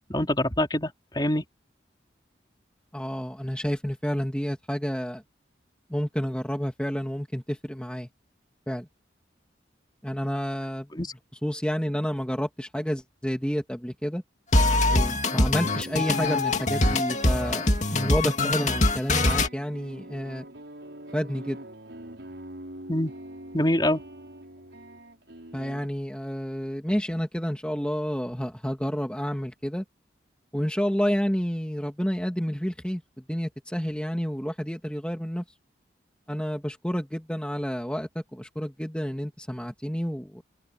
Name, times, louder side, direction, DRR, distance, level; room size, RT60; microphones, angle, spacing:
voice 1, 0.1-1.4 11.0-11.1 22.9-23.1 23.5-24.0, left 1 dB, 25° left, 3.6 m, -25 dB
voice 2, 2.9-5.2 5.9-8.1 8.7-8.9 10.0-10.9 11.4-14.2 14.9-20.5 21.1-21.6 25.5-29.8 30.5-35.4 36.3-40.4, equal, 5° left, 2.4 m, -30 dB
sound 1, 14.5-19.5, left 2 dB, 40° left, 2.3 m, -23 dB
sound 2, 15.6-25.9, right 1 dB, 75° right, 5.9 m, -44 dB
open air
head